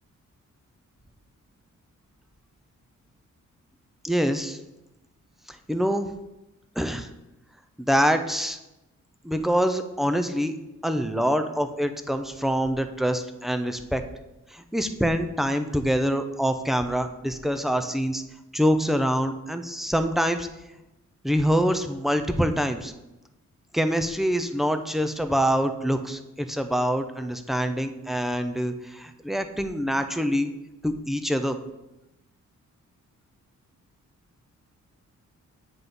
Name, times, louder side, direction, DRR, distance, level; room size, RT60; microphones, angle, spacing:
voice 1, 4.0-4.6 5.7-6.1 6.8-7.1 7.8-8.6 9.2-10.5 10.8-14.0 14.5-18.2 18.5-20.5 21.2-22.9 23.7-30.5 30.8-31.6, equal, ahead, 8 dB, 0.4 m, -25 dB
7.9 x 5.3 x 3.7 m, 0.97 s
wide cardioid pair, 120°, 30 cm